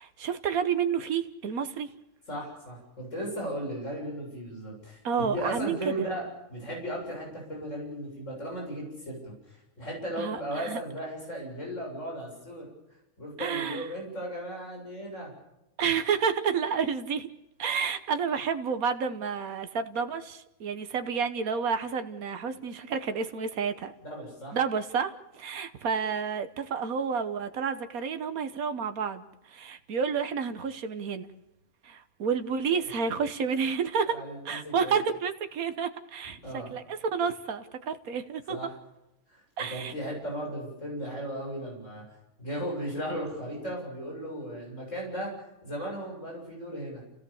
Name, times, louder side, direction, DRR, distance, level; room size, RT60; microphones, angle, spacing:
voice 1, 0.0-1.9 5.0-5.9 10.2-10.8 13.4-13.8 15.8-17.3 17.6-23.9 24.5-31.3 31.8-34.2 34.4-38.7 39.6-39.9, right 6 dB, 90° right, 9 dB, 1.6 m, -30 dB
voice 2, 2.3-12.7 13.2-15.3 24.0-24.6 34.1-34.9 36.4-36.8 38.5-38.7 39.3-42.0 42.4-45.3 45.6-47.0, equal, 60° left, -1 dB, 7.7 m, -36 dB
29.5 x 17.0 x 7.0 m, 0.93 s
omnidirectional pair, 1.5 m